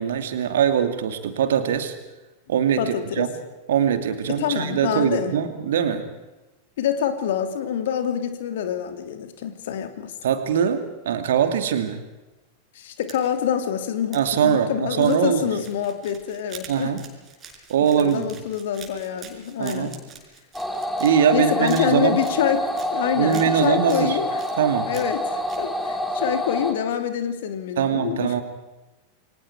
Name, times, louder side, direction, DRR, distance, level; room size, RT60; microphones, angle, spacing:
voice 1, 0.0-1.9 2.5-3.3 3.7-6.1 10.2-12.0 14.1-15.6 16.7-17.0 17.7-18.3 19.6-20.0 21.0-22.2 23.2-24.2 24.6-24.9 27.8-28.4, right 8 dB, 60° right, 8 dB, 2.6 m, -22 dB
voice 2, 2.8-3.3 4.3-5.3 6.8-10.1 12.7-17.0 17.8-19.9 21.3-24.4 24.9-28.4, left 9 dB, 55° left, 8 dB, 2.7 m, -26 dB
sound 1, 12.9-13.5 14.1-14.3 14.9-21.3 21.6-22.9 23.3-24.0 24.4-25.2 25.5-25.6, right 6 dB, 25° right, 5.6 m, -44 dB
sound 2, 20.5-26.7, left 1 dB, 5° left, 3.0 m, -27 dB
29.0 x 23.5 x 4.9 m, 1.1 s
figure-of-eight pair, 90°, 0 cm